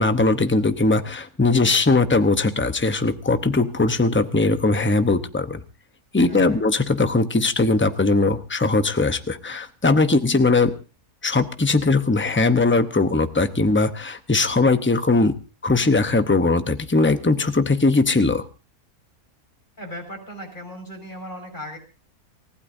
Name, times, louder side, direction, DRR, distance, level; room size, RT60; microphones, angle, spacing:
voice 1, 0.0-5.6 6.1-10.7 11.2-15.3 15.6-18.5, left 3 dB, 15° left, 9 dB, 0.5 m, -20 dB
voice 2, 6.3-6.7 19.8-21.8, equal, 30° left, 2 dB, 5.5 m, -37 dB
28.5 x 15.5 x 2.6 m, 0.32 s
omnidirectional pair, 1.6 m